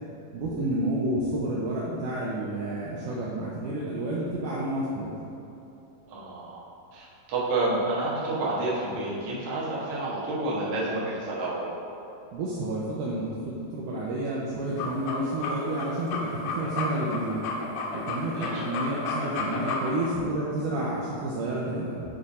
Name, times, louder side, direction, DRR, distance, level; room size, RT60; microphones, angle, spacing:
voice 1, 0.3-5.1 12.3-17.4 17.9-22.1, right 1 dB, 80° right, -5 dB, 1.9 m, -30 dB
voice 2, 6.1-6.6 6.9-11.7 18.3-18.6, right 2 dB, 60° right, -7 dB, 1.8 m, -29 dB
sound 1, 14.6-20.1, left 3 dB, 80° left, 2.5 m, -32 dB
8.8 x 3.3 x 4.1 m, 2.9 s
omnidirectional pair, 4.4 m